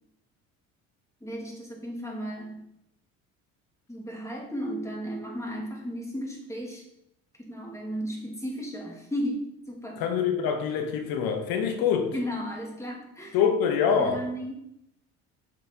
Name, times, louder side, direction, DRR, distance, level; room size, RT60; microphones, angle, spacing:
voice 1, 1.2-2.7 3.9-6.8 7.4-10.0 12.1-13.4 13.9-14.6, equal, 5° left, 2.6 m, -34 dB
voice 2, 10.0-12.1 13.3-14.2, left 7 dB, 65° left, 1.4 m, -25 dB
7.2 x 5.6 x 3.6 m
hypercardioid pair, 60°, 40 cm